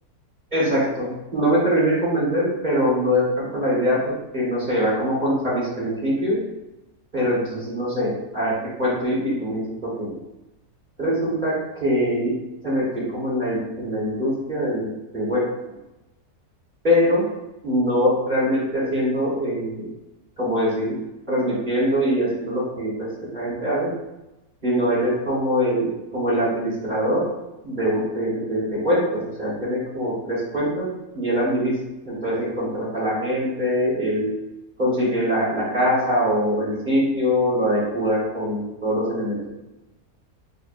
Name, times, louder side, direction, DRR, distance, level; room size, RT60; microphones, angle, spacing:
voice 1, 0.5-6.4 7.1-8.5 8.8-10.1 11.0-12.3 12.6-14.9 15.1-15.4 16.8-17.2 17.6-19.9 20.4-20.9 21.3-23.9 24.6-27.3 27.6-30.9 31.1-31.8 32.0-34.3 34.8-39.5, equal, 30° right, -8 dB, 1.3 m, -23 dB
5.3 x 2.5 x 2.5 m, 0.98 s
omnidirectional pair, 1.7 m